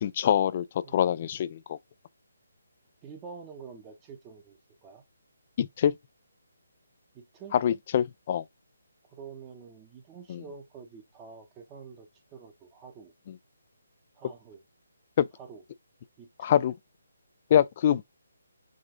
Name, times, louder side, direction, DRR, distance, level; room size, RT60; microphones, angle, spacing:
voice 1, 0.0-1.8 5.6-5.9 7.5-8.4 10.3-10.4 15.2-15.3 16.4-16.7 17.5-18.0, left 9 dB, 35° left, 0.3 m, -25 dB
voice 2, 3.0-5.0 7.1-7.5 8.3-8.4 9.1-13.1 14.1-14.6 15.4-15.6 16.2-16.6, right 6 dB, 15° right, 0.8 m, -47 dB
4.9 x 2.6 x 3.7 m
hypercardioid pair, 160°, 0 cm